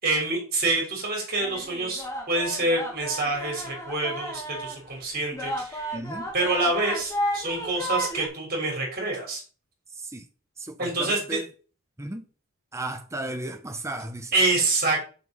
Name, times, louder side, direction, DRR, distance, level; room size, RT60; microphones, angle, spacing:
voice 1, 0.0-6.0 6.3-9.4 10.8-11.4 14.3-15.0, right 2 dB, 40° right, 3.5 m, -26 dB
sound 1, 1.4-8.3, equal, 15° left, 1.7 m, -33 dB
voice 2, 5.9-6.3 9.9-10.3 10.6-11.5 12.0-12.2 12.7-14.3, right 1 dB, 15° right, 0.7 m, -35 dB
6.2 x 5.3 x 5.4 m
head